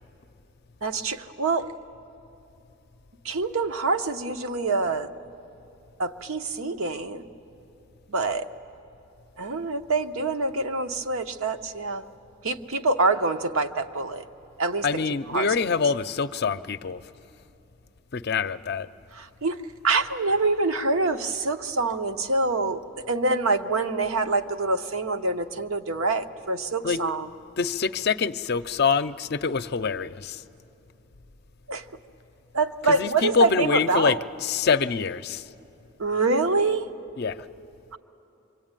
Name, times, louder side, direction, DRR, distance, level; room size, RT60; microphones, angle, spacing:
voice 1, 0.8-1.7 3.2-5.1 6.0-7.2 8.1-8.5 9.4-12.0 12.4-14.2 14.6-15.0 15.3-15.5 19.1-19.6 19.8-27.3 31.7-31.8 32.5-34.2 36.0-36.9, right 3 dB, 85° right, 7 dB, 1.0 m, -25 dB
voice 2, 14.8-17.0 18.1-18.9 26.8-27.0 27.6-30.4 33.0-34.2 34.4-35.5 37.2-37.4, left 5 dB, 50° left, 12 dB, 0.5 m, -25 dB
26.0 x 24.0 x 9.0 m, 2.9 s
head